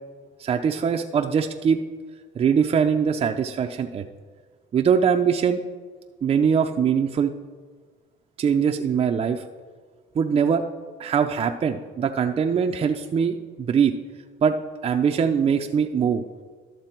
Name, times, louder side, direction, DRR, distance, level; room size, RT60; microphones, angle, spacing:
voice 1, 0.4-1.8 2.4-4.0 4.7-5.6 6.2-7.3 8.4-9.4 10.2-10.6 11.0-13.4 13.7-13.9 14.4-14.5 14.8-16.2, right 7 dB, 35° right, 4 dB, 0.5 m, -22 dB
12.0 x 6.7 x 4.5 m, 1.5 s
cardioid pair, 110°, 17 cm